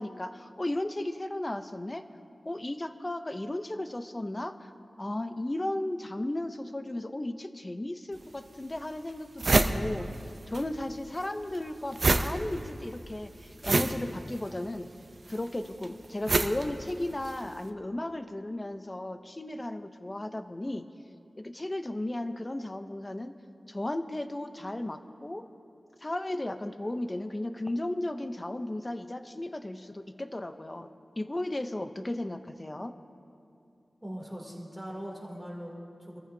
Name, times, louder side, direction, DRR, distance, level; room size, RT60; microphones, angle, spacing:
voice 1, 0.0-2.0 2.4-4.7 5.0-10.1 10.5-14.9 15.3-20.9 21.4-23.3 23.7-25.5 26.0-30.9 31.2-33.0, left 1 dB, 25° left, 9 dB, 0.7 m, -35 dB
sound 1, 8.1-8.2 8.8-8.9 9.1-10.6 10.9-17.5, right 3 dB, 55° right, 0.6 m, -28 dB
voice 2, 34.0-36.2, equal, 5° right, -3 dB, 2.9 m, -41 dB
24.5 x 14.5 x 2.8 m, 2.6 s
wide cardioid pair, 70°, 0 cm